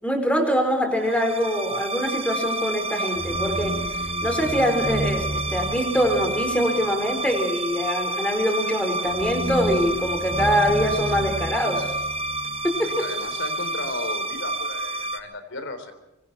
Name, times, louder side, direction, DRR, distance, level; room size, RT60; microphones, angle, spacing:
voice 1, 0.0-3.8 4.2-11.9 12.6-13.1, equal, 5° left, 5 dB, 4.7 m, -24 dB
sound 1, 1.0-15.2, right 2 dB, 25° right, 1.3 m, -28 dB
voice 2, 12.8-15.9, left 2 dB, 60° left, 9 dB, 3.6 m, -35 dB
25.0 x 24.5 x 4.5 m, 0.98 s
head